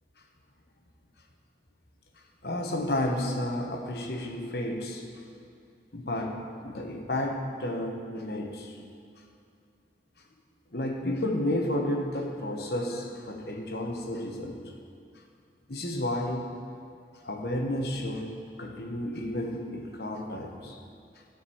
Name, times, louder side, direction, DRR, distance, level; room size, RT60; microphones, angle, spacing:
voice 1, 2.4-5.0 5.9-8.7 10.7-14.6 15.7-16.5 17.2-20.8, left 1 dB, 60° left, 2 dB, 1.2 m, -32 dB
14.5 x 5.3 x 7.0 m, 2.4 s
head